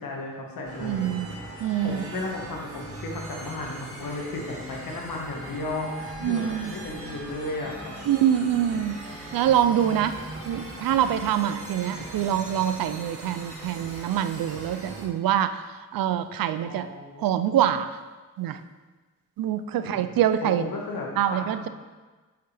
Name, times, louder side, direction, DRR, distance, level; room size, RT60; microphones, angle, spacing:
voice 1, 0.0-1.3 1.8-8.0 16.6-17.4 19.7-21.7, left 2 dB, 80° left, -1 dB, 1.6 m, -35 dB
sound 1, 0.6-15.1, right 2 dB, 45° right, 2.0 m, -40 dB
voice 2, 0.8-1.3 1.6-2.2 6.2-6.7 8.1-9.0 9.3-10.2 10.5-16.9 17.2-17.9 18.4-18.6 19.4-20.7 21.2-21.7, right 10 dB, 80° right, 11 dB, 0.5 m, -25 dB
8.6 x 5.8 x 3.4 m, 1.3 s
cardioid pair, 55°, 34 cm